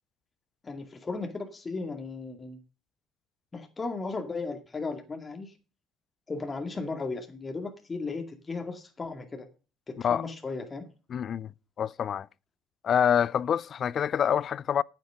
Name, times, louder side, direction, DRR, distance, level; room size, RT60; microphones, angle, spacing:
voice 1, 0.6-2.6 3.5-5.5 6.3-9.5 9.9-10.9, left 3 dB, 25° left, 2.3 m, -36 dB
voice 2, 11.1-11.5 11.8-12.3 12.8-14.8, left 8 dB, 50° left, 0.4 m, -26 dB
9.3 x 9.2 x 5.0 m
hypercardioid pair, 65°, 0 cm